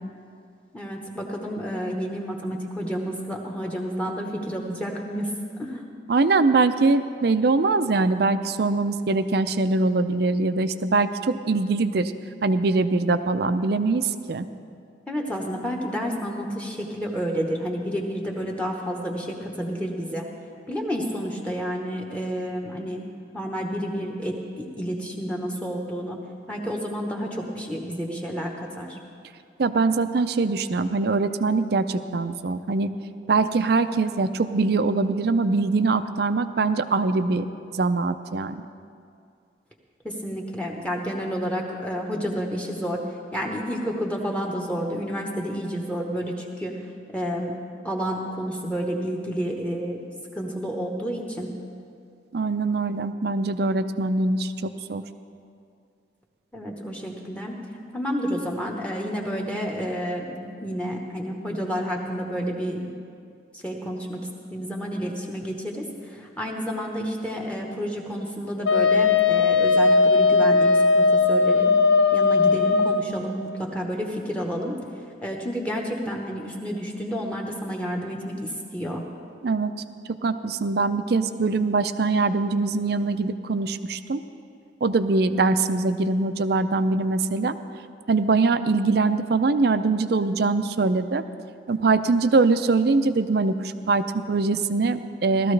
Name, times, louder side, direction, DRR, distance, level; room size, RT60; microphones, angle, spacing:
voice 1, 0.7-5.3 5.6-5.9 15.1-20.3 20.7-23.0 23.3-26.2 26.5-29.0 40.0-43.0 43.3-46.7 47.1-47.5 47.8-50.0 50.3-51.5 56.5-57.6 57.9-62.8 63.5-64.2 64.5-71.7 72.1-74.8 75.2-79.0, equal, 5° left, 0 dB, 1.0 m, -30 dB
voice 2, 6.1-12.1 12.4-14.5 29.6-32.9 33.3-37.5 37.7-38.6 52.3-55.0 79.4-79.7 80.1-84.2 84.8-87.5 88.1-91.2 91.7-93.6 93.9-95.5, right 3 dB, 55° right, 11 dB, 0.4 m, -22 dB
Wind instrument woodwind instrument, 68.6-73.1, left 4 dB, 80° left, 0.8 m, -18 dB
17.0 x 13.0 x 3.3 m, 2.4 s
head